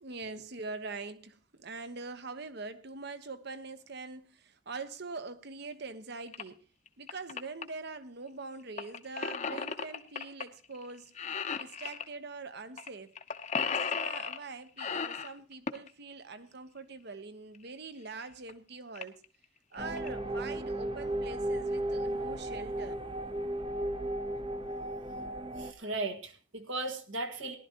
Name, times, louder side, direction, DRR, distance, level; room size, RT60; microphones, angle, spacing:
voice 1, 0.0-6.6 7.0-11.1 11.6-13.1 13.6-19.2 19.7-23.0, right 3 dB, 55° right, 0.9 m, -43 dB
sound 1, 6.3-6.4 6.9-7.6 8.8-10.4 10.7-10.9 11.2-12.1 12.8-12.9 13.2-14.4 14.8-15.9 17.5-17.6 18.2-18.3 18.5-18.6 19.0-19.2 19.7-20.1, left 5 dB, 35° left, 0.7 m, -35 dB
sound 2, 19.8-25.7, right 1 dB, 25° right, 0.6 m, -35 dB
voice 2, 25.6-27.6, right 2 dB, 75° right, 1.7 m, -36 dB
18.0 x 11.5 x 2.9 m
head